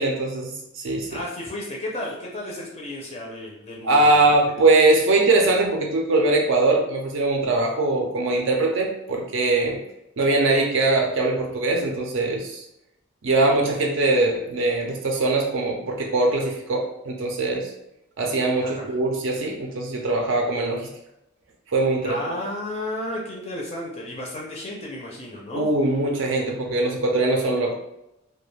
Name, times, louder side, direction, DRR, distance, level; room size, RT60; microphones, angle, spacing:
voice 1, 0.0-1.1 3.8-9.8 10.2-12.6 13.2-17.7 18.2-20.9 21.7-22.2 25.5-27.7, right 2 dB, 65° right, 0 dB, 0.4 m, -21 dB
voice 2, 1.1-4.4 18.6-18.9 22.0-25.6, left 1 dB, 30° left, -2 dB, 0.4 m, -33 dB
2.3 x 2.2 x 3.1 m, 0.85 s
head